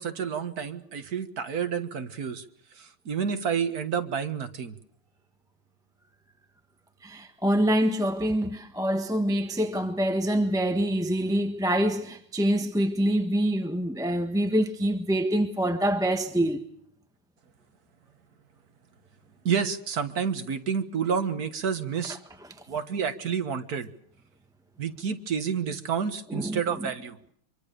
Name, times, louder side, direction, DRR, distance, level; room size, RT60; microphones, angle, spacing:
voice 1, 0.0-2.4 2.8-4.8 19.5-22.2 22.7-23.9 24.8-27.2, right 7 dB, 50° right, 1.8 m, -29 dB
voice 2, 7.0-16.7 22.1-22.2 26.3-26.9, right 1 dB, ahead, 1.0 m, -26 dB
25.0 x 24.0 x 6.8 m
omnidirectional pair, 2.3 m